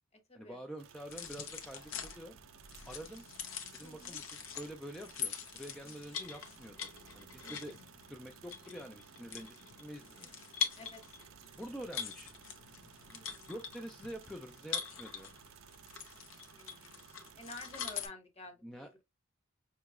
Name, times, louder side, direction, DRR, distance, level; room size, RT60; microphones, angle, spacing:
voice 1, 0.3-2.4 2.9-3.2 3.7-6.9 7.1-7.8 8.1-10.3 11.5-12.3 13.5-15.3 18.6-19.0, equal, 5° left, 0.3 m, -47 dB
sound 1, 0.8-18.1, right 10 dB, 70° right, 0.4 m, -58 dB
sound 2, 1.1-18.1, left 7 dB, 80° left, 0.8 m, -44 dB
voice 2, 3.8-4.2 5.8-5.9 7.4-7.6 10.8-11.0 13.1-13.5 16.5-17.0 17.3-18.6, left 2 dB, 30° left, 0.9 m, -50 dB
5.5 x 3.0 x 2.3 m
head